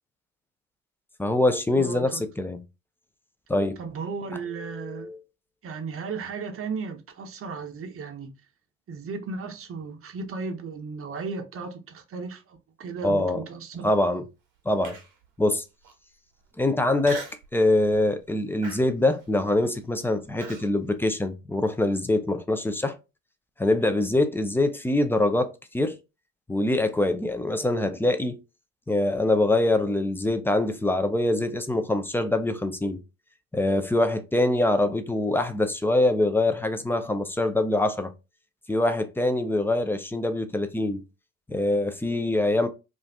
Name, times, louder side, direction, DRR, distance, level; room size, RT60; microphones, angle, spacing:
voice 1, 1.2-2.6 3.5-3.8 4.6-5.2 13.0-13.4 13.8-14.2 14.7-15.0 15.4-15.6 16.6-17.2 17.5-23.0 23.6-26.0 26.5-28.4 28.9-33.0 33.5-38.1 38.7-41.0 41.5-42.7, left 2 dB, 5° left, 0.4 m, -24 dB
voice 2, 1.7-2.2 3.8-5.1 5.6-8.3 8.9-13.9, right 4 dB, 35° right, 0.8 m, -35 dB
Human voice, 14.8-15.3 15.8-15.9 17.0-17.5 17.9-18.2 18.6-20.7, right 4 dB, 60° right, 1.0 m, -40 dB
2.5 x 2.4 x 3.4 m
hypercardioid pair, 55°, 39 cm